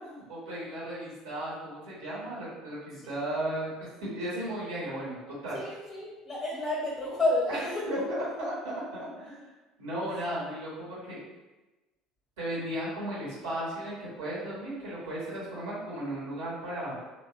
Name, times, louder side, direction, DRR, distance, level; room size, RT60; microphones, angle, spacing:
voice 1, 0.0-5.6 7.9-9.4 9.8-11.2 12.4-16.9, right 1 dB, 70° right, -8 dB, 0.9 m, -35 dB
voice 2, 5.5-8.3 10.1-10.3, left 2 dB, 20° left, -4 dB, 0.5 m, -31 dB
2.7 x 2.0 x 2.3 m, 1.1 s
figure-of-eight pair, 60°, 0 cm